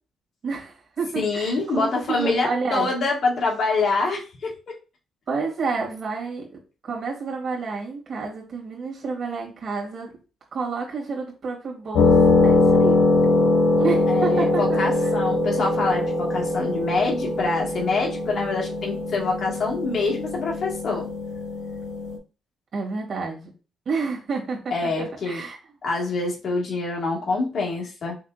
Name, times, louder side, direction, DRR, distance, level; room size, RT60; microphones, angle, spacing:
voice 1, 0.4-2.9 5.3-6.5 6.8-10.2 10.5-12.2 12.4-13.0 13.8-15.1 22.7-23.5 23.9-25.6, right 4 dB, 55° right, -1 dB, 2.4 m, -29 dB
voice 2, 1.2-4.7 14.1-21.1 24.7-25.4 25.8-28.1, left 3 dB, 55° left, -1 dB, 1.8 m, -25 dB
sound 1, 11.9-22.2, left 2 dB, 80° left, 1.8 m, -22 dB
5.7 x 3.6 x 2.5 m, 0.33 s
cardioid pair, 90°, 0 cm